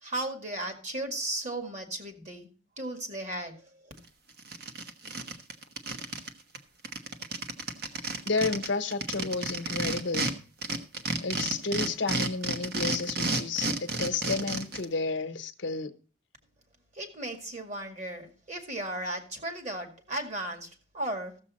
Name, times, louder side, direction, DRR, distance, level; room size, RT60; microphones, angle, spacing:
voice 1, 0.0-2.5 2.8-3.9 16.9-21.4, right 1 dB, 40° right, 2.1 m, -36 dB
sound 1, 4.0-4.1 4.4-6.3 6.5-6.6 6.8-10.3 10.6-14.8, right 3 dB, 55° right, 1.2 m, -31 dB
voice 2, 8.2-10.3 11.2-15.9, left 4 dB, 65° left, 0.9 m, -31 dB
14.0 x 7.3 x 4.2 m
head